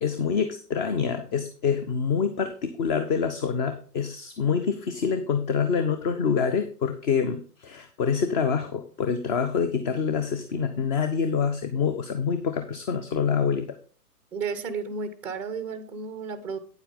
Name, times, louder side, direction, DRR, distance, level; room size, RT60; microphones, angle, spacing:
voice 1, 0.0-13.7, left 6 dB, 30° left, 8 dB, 1.0 m, -26 dB
voice 2, 14.3-16.6, right 5 dB, 5° right, 9 dB, 0.5 m, -33 dB
9.4 x 8.2 x 3.8 m, 0.41 s
hypercardioid pair, 125°, 47 cm